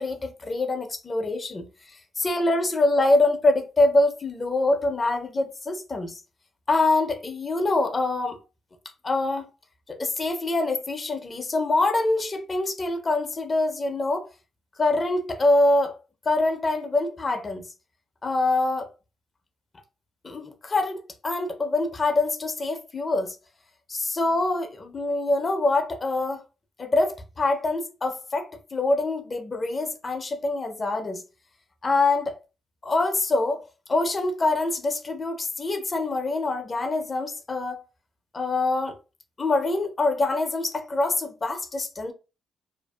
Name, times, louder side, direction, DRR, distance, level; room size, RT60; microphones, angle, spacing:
voice 1, 0.0-6.2 6.7-8.4 9.0-9.5 9.9-14.3 14.8-15.9 16.3-17.6 18.2-18.9 20.2-23.4 23.9-26.4 26.8-31.2 31.8-32.4 32.8-33.6 33.9-37.8 38.3-39.0 39.4-42.1, left 2 dB, 30° left, 0.4 m, -25 dB
2.5 x 2.3 x 2.2 m
cardioid pair, 90°, 0 cm